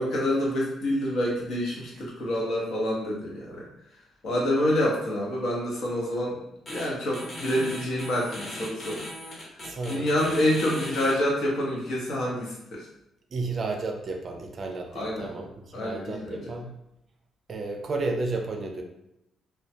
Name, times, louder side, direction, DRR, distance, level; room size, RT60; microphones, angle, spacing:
voice 1, 0.0-3.7 4.2-6.4 6.7-9.0 9.3-12.9 14.9-15.3 15.7-16.5, left 1 dB, 70° left, -3 dB, 0.8 m, -27 dB
sound 1, 6.7-6.9 7.1-11.1, left 1 dB, 45° left, 0.9 m, -38 dB
voice 2, 9.6-10.3 13.3-16.8 17.5-18.8, right 3 dB, 45° right, 3 dB, 0.4 m, -32 dB
2.2 x 2.1 x 2.7 m, 0.83 s
cardioid pair, 90°, 0 cm